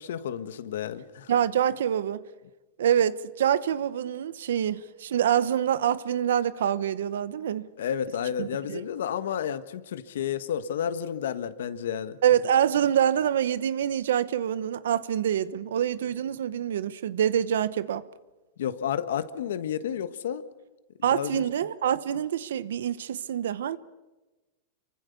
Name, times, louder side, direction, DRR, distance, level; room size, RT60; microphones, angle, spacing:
voice 1, 0.0-1.3 7.8-12.2 18.6-20.4 21.1-21.4, left 9 dB, 85° left, 1.5 m, -31 dB
voice 2, 1.3-2.2 2.8-7.7 8.4-8.8 12.2-18.0 21.0-23.8, right 9 dB, 85° right, 1.0 m, -26 dB
27.0 x 24.0 x 6.9 m
supercardioid pair, 135°, 0 cm